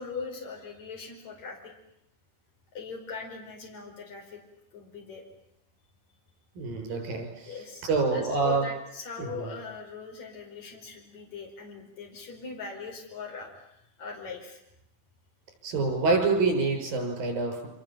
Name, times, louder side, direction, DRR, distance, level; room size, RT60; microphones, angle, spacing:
voice 1, 0.0-1.7 2.7-4.4 4.7-5.2 7.4-14.6, left 4 dB, 55° left, 1 dB, 6.2 m, -40 dB
voice 2, 6.6-7.5 7.8-8.7 9.2-9.5 15.6-17.7, right 3 dB, 90° right, 4 dB, 8.0 m, -26 dB
29.0 x 26.0 x 7.5 m, 0.78 s
omnidirectional pair, 4.0 m